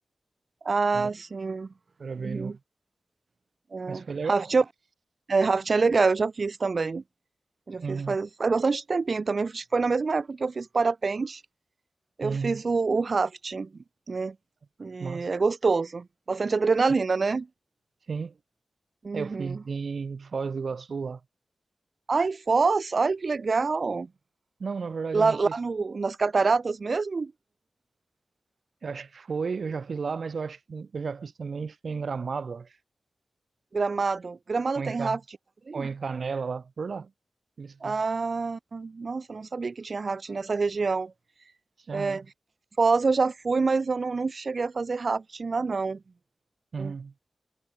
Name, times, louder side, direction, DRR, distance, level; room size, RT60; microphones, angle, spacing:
voice 1, 0.6-1.7 2.2-2.6 3.7-4.6 5.3-7.0 7.7-11.4 12.2-13.7 14.1-14.4 14.8-17.5 19.0-19.6 22.1-24.1 25.1-27.3 33.7-35.2 35.7-35.9 37.8-41.1 41.9-42.2 42.8-46.0 46.8-46.9, right 4 dB, 55° right, 0.4 m, -26 dB
voice 2, 2.0-2.6 3.9-4.5 7.8-8.2 12.2-12.6 15.0-15.3 18.1-18.4 19.1-21.2 24.6-25.5 28.8-32.8 34.7-35.2 35.7-37.1 37.6-38.0 41.9-42.2 46.7-47.1, right 5 dB, 70° right, 1.2 m, -33 dB
wide cardioid pair, 95°, 0 cm